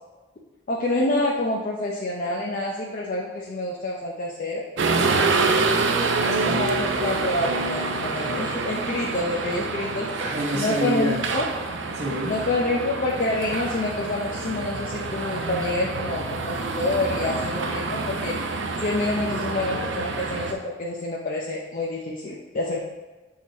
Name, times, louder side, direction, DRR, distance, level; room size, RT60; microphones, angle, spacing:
voice 1, 0.7-4.6 5.3-5.7 6.3-10.1 10.5-11.4 12.3-18.4 18.8-22.8, left 2 dB, 45° left, -2 dB, 0.6 m, -27 dB
sound 1, 4.8-20.5, right 3 dB, 80° right, 0.6 m, -27 dB
voice 2, 4.9-5.3 6.3-6.6 10.1-11.2 11.9-12.3, right 1 dB, 50° right, -6 dB, 1.0 m, -28 dB
6.3 x 3.8 x 4.1 m, 1.2 s
head